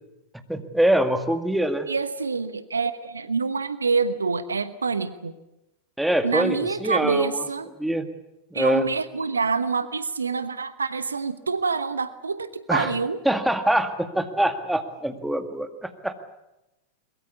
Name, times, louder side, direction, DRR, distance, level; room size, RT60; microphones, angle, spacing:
voice 1, 0.5-1.9 6.0-7.4 7.8-8.1 8.5-8.8 12.7-12.9 13.3-16.1, right 1 dB, 5° right, 7 dB, 2.0 m, -24 dB
voice 2, 1.9-5.3 6.2-7.7 8.5-13.2, right 4 dB, 75° right, 13 dB, 1.1 m, -26 dB
22.5 x 21.5 x 8.5 m, 0.94 s
figure-of-eight pair, 90°, 0 cm